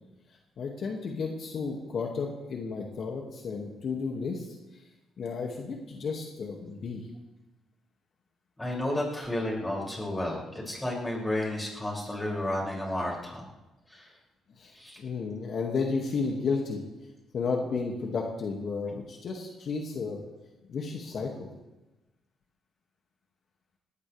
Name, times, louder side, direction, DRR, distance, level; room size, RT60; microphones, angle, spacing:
voice 1, 0.6-4.8 5.2-7.1 14.6-16.8 17.3-20.2 20.7-21.5, left 4 dB, 60° left, 0 dB, 2.4 m, -33 dB
voice 2, 8.6-13.4 13.9-14.1 14.7-15.0, left 1 dB, 15° left, -3 dB, 7.1 m, -32 dB
19.5 x 19.0 x 3.6 m, 1.1 s
cardioid pair, 90°, 0 cm